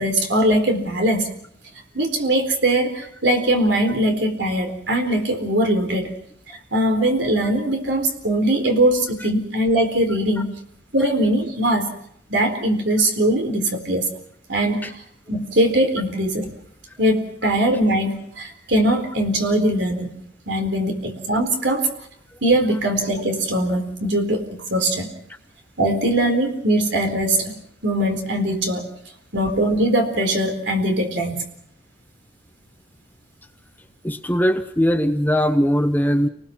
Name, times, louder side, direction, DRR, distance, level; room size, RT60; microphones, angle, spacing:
voice 1, 0.0-1.3 1.9-6.1 6.7-10.6 10.9-11.9 12.3-14.1 14.5-15.0 15.3-16.5 17.0-20.1 20.5-21.9 22.4-25.1 25.8-28.9 29.3-31.4, right 1 dB, 60° right, 5 dB, 4.2 m, -21 dB
voice 2, 34.0-36.3, equal, 10° left, 8 dB, 0.8 m, -20 dB
29.0 x 20.0 x 6.1 m, 0.69 s
head